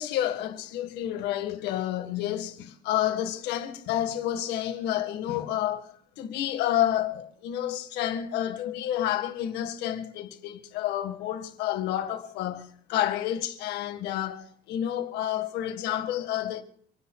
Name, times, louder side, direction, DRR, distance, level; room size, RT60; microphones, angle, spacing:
voice 1, 0.0-16.6, left 11 dB, 90° left, 1.9 m, -30 dB
30.0 x 10.5 x 2.4 m
cardioid pair, 110°, 17 cm